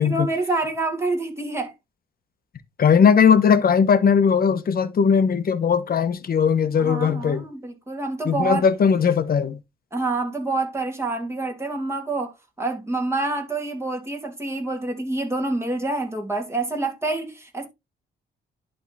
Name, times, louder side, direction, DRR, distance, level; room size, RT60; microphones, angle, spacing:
voice 1, 0.0-1.7 6.8-8.6 9.9-17.7, right 2 dB, 15° right, 3.0 m, -27 dB
voice 2, 2.8-7.4 8.2-9.6, left 6 dB, 50° left, 1.2 m, -18 dB
11.0 x 3.7 x 4.2 m
cardioid pair, 90°, 20 cm